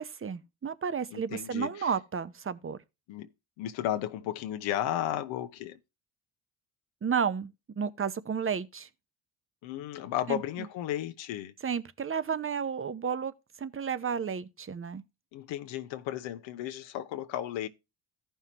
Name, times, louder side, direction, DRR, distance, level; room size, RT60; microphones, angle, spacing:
voice 1, 0.0-2.8 7.0-8.9 10.3-10.7 11.6-13.3 13.6-15.0, right 6 dB, 30° right, 0.8 m, -32 dB
voice 2, 1.1-1.9 3.1-3.3 3.6-5.8 9.6-11.5 15.3-17.7, left 12 dB, 80° left, 0.9 m, -34 dB
15.0 x 5.7 x 2.9 m
supercardioid pair, 65°, 45 cm